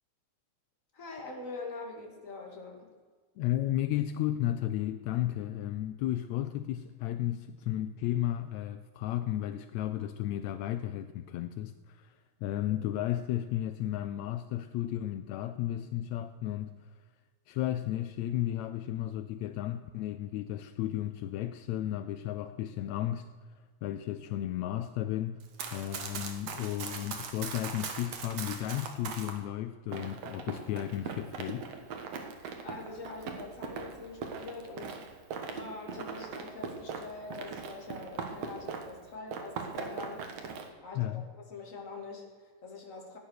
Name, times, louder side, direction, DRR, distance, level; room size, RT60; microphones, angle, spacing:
voice 1, 0.9-2.9 12.7-12.8 32.6-35.0 35.5-40.3 40.8-43.2, left 3 dB, 25° left, 1 dB, 2.3 m, -44 dB
voice 2, 3.4-16.9 17.5-23.3 23.8-25.4 25.7-31.7 40.9-41.2, left 13 dB, 85° left, 11 dB, 1.6 m, -33 dB
Run, 25.4-29.4 29.9-39.0 39.3-40.7, right 5 dB, 55° right, 2.2 m, -40 dB
15.5 x 9.8 x 6.5 m, 1.5 s
omnidirectional pair, 3.8 m